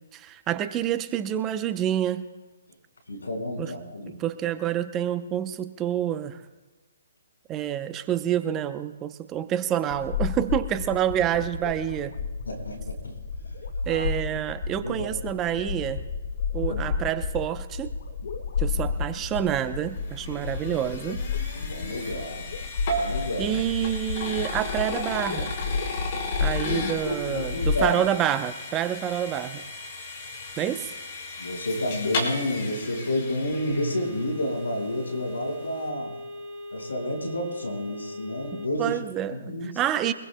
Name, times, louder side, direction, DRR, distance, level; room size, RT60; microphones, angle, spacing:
voice 1, 0.1-2.2 3.6-3.7 4.2-6.4 7.5-12.1 13.9-16.0 16.5-17.9 18.6-21.2 23.4-25.5 26.4-29.6 30.6-30.9 38.5-40.1, right 11 dB, 20° right, 10 dB, 0.7 m, -28 dB
voice 2, 3.1-4.2 12.4-13.2 13.9-14.1 14.8-15.1 16.6-16.9 21.5-22.5 22.9-23.6 27.0-28.0 31.4-36.1 36.7-39.0 39.3-39.7, left 1 dB, 90° left, 3 dB, 4.9 m, -30 dB
sound 1, 9.9-27.8, left 5 dB, 65° left, 1.7 m, -32 dB
sound 2, 19.4-34.6, left 2 dB, 45° left, 4.3 m, -35 dB
sound 3, 33.5-38.7, left 1 dB, ahead, 6.5 m, -40 dB
24.0 x 21.0 x 2.3 m, 1.2 s
hypercardioid pair, 140°, 0 cm